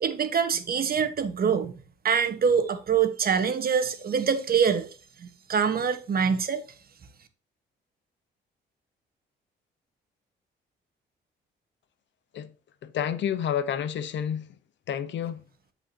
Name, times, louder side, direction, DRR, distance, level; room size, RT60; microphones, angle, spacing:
voice 1, 0.0-1.8 2.0-4.9 5.2-6.6, right 6 dB, 50° right, 1.3 m, -25 dB
voice 2, 12.8-14.5 14.9-15.4, left 9 dB, 65° left, 0.9 m, -29 dB
14.0 x 5.0 x 2.8 m
cardioid pair, 90°, 20 cm